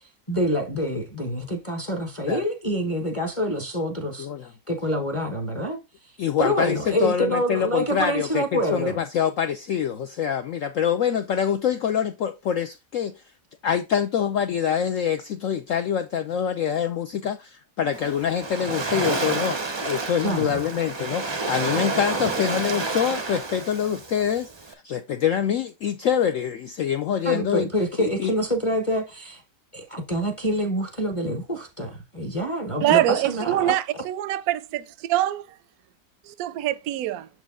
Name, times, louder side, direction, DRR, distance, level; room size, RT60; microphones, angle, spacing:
voice 1, 0.3-4.3 4.7-5.8 6.4-9.0 20.2-20.7 27.2-29.4 29.7-33.7, equal, 25° left, 0.9 m, -26 dB
voice 2, 4.2-4.5 6.2-13.1 13.6-27.7 28.0-28.3, left 8 dB, 75° left, 0.7 m, -25 dB
Waves surf, 17.9-24.7, right 3 dB, 40° right, 0.3 m, -29 dB
voice 3, 32.8-35.6 36.2-37.3, right 13 dB, 70° right, 0.9 m, -24 dB
6.7 x 4.7 x 3.6 m
omnidirectional pair, 1.9 m